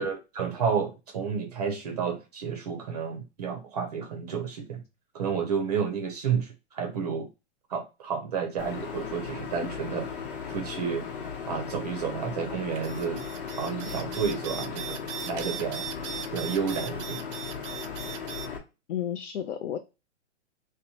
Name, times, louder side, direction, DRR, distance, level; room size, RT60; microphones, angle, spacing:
voice 1, 0.0-4.8 5.1-7.3 7.7-10.1 10.5-11.1 11.5-13.3 13.6-15.0 15.3-15.8 16.3-17.2, right 6 dB, 35° right, 0.4 m, -31 dB
sound 1, 8.6-18.6, left 6 dB, 50° left, 0.8 m, -37 dB
sound 2, 12.7-18.5, right 9 dB, 85° right, 0.5 m, -39 dB
voice 2, 18.9-19.8, left 10 dB, 75° left, 0.5 m, -32 dB
2.8 x 2.1 x 2.7 m
hypercardioid pair, 150°, 36 cm